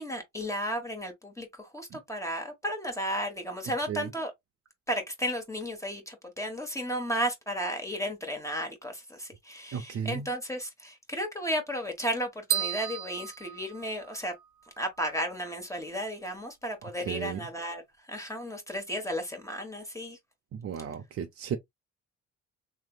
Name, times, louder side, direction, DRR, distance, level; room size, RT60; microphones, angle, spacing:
voice 1, 0.0-1.5 1.7-4.3 4.9-14.3 14.8-17.8 18.1-20.2, equal, 10° left, 1.2 m, -34 dB
voice 2, 9.7-10.3 16.8-17.4 20.5-21.6, right 8 dB, 50° right, 0.6 m, -34 dB
sound 1, 12.5-14.4, right 10 dB, 85° right, 0.7 m, -33 dB
3.2 x 3.0 x 2.3 m
cardioid pair, 90°, 30 cm